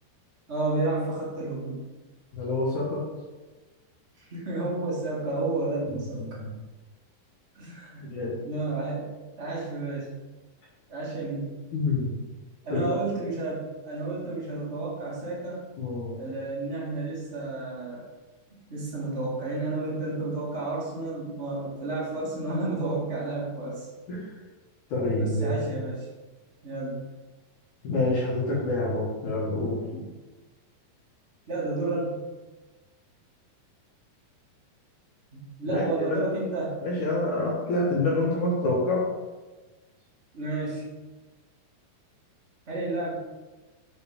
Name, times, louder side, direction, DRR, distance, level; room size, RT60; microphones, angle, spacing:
voice 1, 0.5-1.8 4.3-6.4 7.5-8.1 8.4-9.1 9.4-10.1 10.9-11.5 12.6-15.6 16.2-18.1 18.7-23.9 25.1-26.0 26.6-27.0 29.9-30.1 31.5-32.2 35.3-36.8 40.3-40.9 42.7-43.2, right 2 dB, 70° right, -7 dB, 0.6 m, -31 dB
voice 2, 2.3-3.0 5.9-6.5 8.0-8.4 11.7-12.1 12.7-12.9 15.8-16.2 24.1-24.3 24.9-25.7 27.8-29.8 35.6-36.2 36.8-39.0, left 2 dB, 60° left, -6 dB, 2.6 m, -27 dB
7.0 x 4.1 x 4.9 m, 1.2 s
omnidirectional pair, 4.8 m